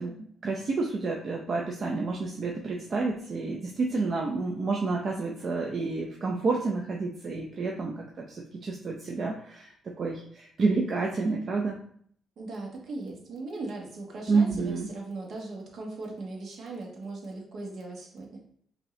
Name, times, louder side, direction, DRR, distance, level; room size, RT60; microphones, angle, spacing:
voice 1, 0.0-9.7 10.0-11.8 14.3-14.9, right 3 dB, 45° right, 0 dB, 0.6 m, -29 dB
voice 2, 12.4-18.3, right 2 dB, 60° right, 0 dB, 1.4 m, -38 dB
5.2 x 2.8 x 3.2 m, 0.62 s
cardioid pair, 90°, 0 cm